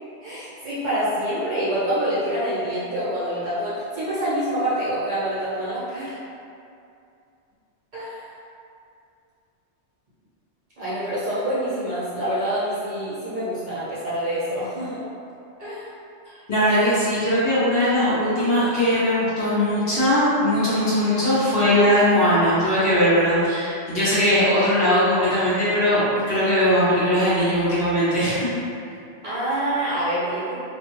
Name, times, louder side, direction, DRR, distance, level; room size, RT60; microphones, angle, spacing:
voice 1, 0.2-6.2 7.9-8.3 10.8-15.0 15.6-15.9 29.2-30.5, right 1 dB, 45° right, -11 dB, 0.7 m, -26 dB
voice 2, 16.5-28.5, equal, 60° left, -11 dB, 1.0 m, -20 dB
2.5 x 2.3 x 3.0 m, 2.5 s
omnidirectional pair, 1.2 m